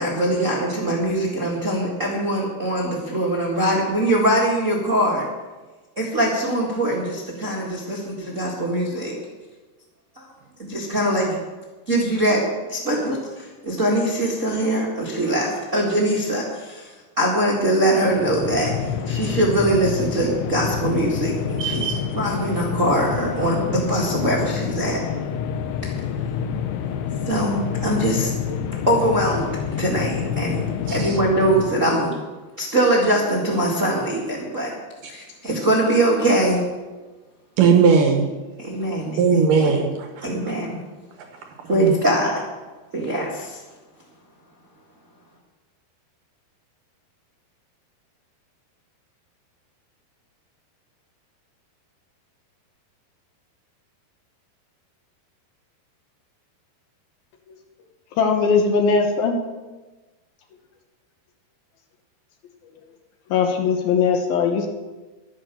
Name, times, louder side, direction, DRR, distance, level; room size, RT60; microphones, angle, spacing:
voice 1, 0.0-5.3 6.0-9.2 10.1-10.2 10.6-11.4 11.9-12.4 12.7-16.9 17.2-25.0 27.3-28.3 28.9-29.5 29.8-32.1 32.6-34.7 35.1-36.6 38.6-39.2 39.6-39.7 40.2-40.8 41.7-42.4 42.9-43.6, right 1 dB, 35° right, -3 dB, 1.3 m, -22 dB
sound 1, 18.1-31.9, left 7 dB, 90° left, 3.0 m, -28 dB
voice 2, 21.6-22.0 30.9-31.2 37.6-38.3 39.2-40.3 41.8-41.9, right 5 dB, 65° right, 4 dB, 2.3 m, -18 dB
voice 3, 58.2-59.4 63.3-64.7, left 5 dB, 70° left, 4 dB, 2.9 m, -19 dB
11.5 x 10.5 x 6.9 m, 1.2 s
omnidirectional pair, 4.7 m